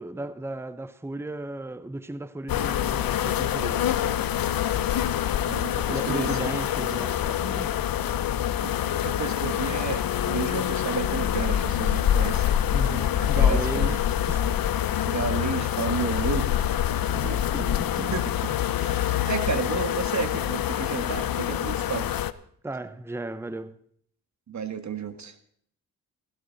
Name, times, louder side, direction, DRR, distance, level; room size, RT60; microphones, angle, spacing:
voice 1, 0.0-4.2 5.9-7.9 12.7-14.5 15.0-15.1 17.1-17.9 22.6-23.8, right 2 dB, 5° right, 0.8 m, -35 dB
sound 1, 2.5-22.3, left 10 dB, 65° left, 0.8 m, -26 dB
voice 2, 5.5-6.4 8.6-12.5 13.2-14.0 15.1-16.7 17.2-17.4 18.0-22.1 24.5-25.3, right 5 dB, 50° right, 2.0 m, -32 dB
16.5 x 16.0 x 4.1 m
cardioid pair, 85°, 37 cm